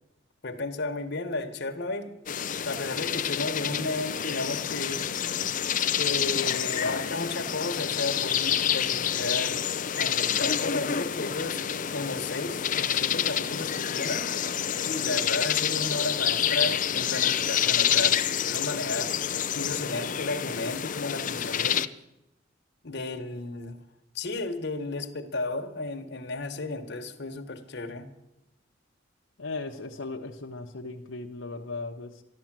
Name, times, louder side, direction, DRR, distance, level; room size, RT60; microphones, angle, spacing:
voice 1, 0.4-2.1 2.6-5.3 6.0-9.6 10.0-11.6 11.9-14.3 14.8-19.1 19.5-21.8 22.8-23.8 24.1-28.1, left 2 dB, 60° left, 4 dB, 1.4 m, -33 dB
sound 1, 2.3-21.9, left 9 dB, 45° left, 0.5 m, -28 dB
voice 2, 29.4-32.2, left 3 dB, 85° left, 1 dB, 1.0 m, -37 dB
13.0 x 12.0 x 7.5 m, 0.89 s
head